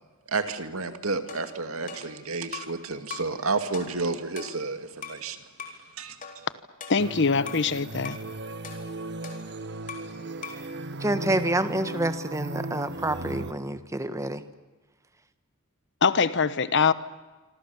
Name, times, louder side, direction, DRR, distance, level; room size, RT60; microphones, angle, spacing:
voice 1, 0.3-5.4 6.0-6.2, right 3 dB, 70° right, 8 dB, 2.4 m, -31 dB
sound 1, 1.3-2.8 3.1-3.4 3.7-5.3 5.6-5.8 6.2-7.7 8.0-8.3 8.6-10.2 10.4-10.7, left 5 dB, 40° left, 3.9 m, -42 dB
voice 2, 6.9-8.2 16.0-16.9, left 5 dB, 55° left, 15 dB, 1.1 m, -23 dB
sound 2, 7.0-13.5, right 2 dB, 50° right, 1.4 m, -36 dB
voice 3, 11.0-14.4, right 1 dB, 15° right, 11 dB, 1.4 m, -28 dB
26.5 x 26.0 x 7.2 m, 1.2 s
head